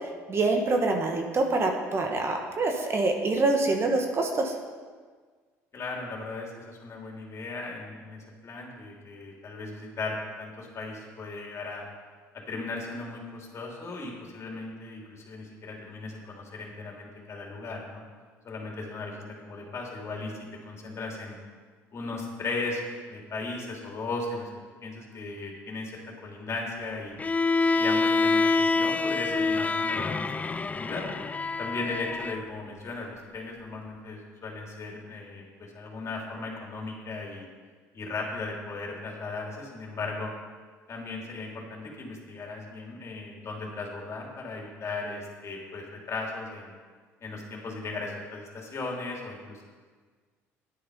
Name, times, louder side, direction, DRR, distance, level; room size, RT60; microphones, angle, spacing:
voice 1, 0.0-4.6, right 2 dB, 40° right, 3 dB, 1.7 m, -26 dB
voice 2, 5.7-11.9 12.3-18.0 18.4-21.4 21.9-22.8 23.1-24.5 24.8-27.2 27.8-30.3 30.5-31.0 31.6-37.5 37.9-40.3 40.9-46.7 47.2-49.6, left 3 dB, 45° left, -1 dB, 3.2 m, -37 dB
Bowed string instrument, 27.2-32.4, left 3 dB, 20° left, 0.4 m, -26 dB
10.5 x 8.8 x 5.4 m, 1.5 s
hypercardioid pair, 65°, 7 cm